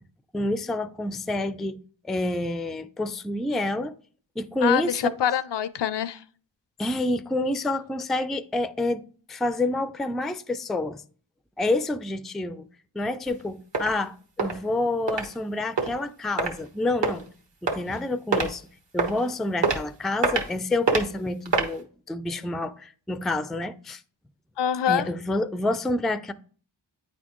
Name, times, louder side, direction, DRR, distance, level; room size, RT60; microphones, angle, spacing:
voice 1, 0.3-1.8 2.0-3.9 4.4-5.0 6.8-9.0 9.3-11.0 11.6-12.7 12.9-17.3 17.6-18.6 18.9-24.0 24.9-26.3, left 2 dB, ahead, 0.3 m, -28 dB
voice 2, 4.6-6.2 24.6-25.1, left 9 dB, 60° left, 0.5 m, -25 dB
sound 1, 13.3-13.4 13.7-13.9 14.4-14.5 15.1-15.2 15.8-15.9 16.4-16.5 17.0-17.2 17.7-18.0 18.3-18.5 19.0-19.2 19.6-19.8 20.2-20.5 20.9-21.0 21.5-21.7, right 4 dB, 65° right, 1.3 m, -23 dB
8.9 x 4.2 x 3.0 m
cardioid pair, 50°, 48 cm